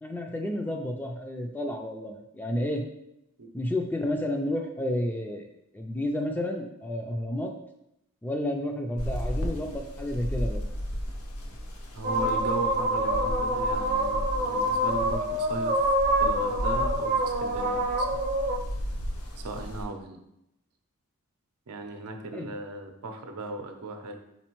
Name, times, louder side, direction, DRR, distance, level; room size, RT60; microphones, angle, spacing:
voice 1, 0.0-2.8 3.5-5.5 5.7-7.5 8.2-10.6 22.3-22.5, left 1 dB, 10° left, 3 dB, 0.3 m, -31 dB
sound 1, 9.0-19.8, equal, 75° left, 0.7 m, -35 dB
voice 2, 11.9-15.8 16.2-18.2 19.4-20.2 21.7-24.2, right 2 dB, 85° right, 5 dB, 0.6 m, -37 dB
sound 2, 12.0-18.6, right 1 dB, 35° right, 0.6 m, -26 dB
4.2 x 4.2 x 3.0 m, 0.83 s
head